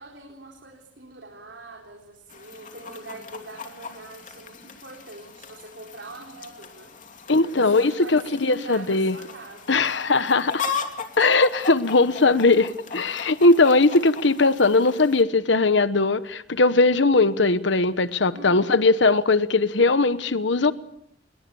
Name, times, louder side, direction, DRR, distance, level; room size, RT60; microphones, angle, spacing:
voice 1, 0.0-6.9 7.4-10.0 18.3-18.8, right 2 dB, 70° right, 0 dB, 4.3 m, -43 dB
Chicken rooster, 2.3-15.2, left 5 dB, 45° left, 2.9 m, -38 dB
voice 2, 7.3-9.1 9.7-10.6 11.2-20.7, left 3 dB, 75° left, 13 dB, 1.1 m, -19 dB
28.0 x 22.5 x 7.0 m, 0.72 s
head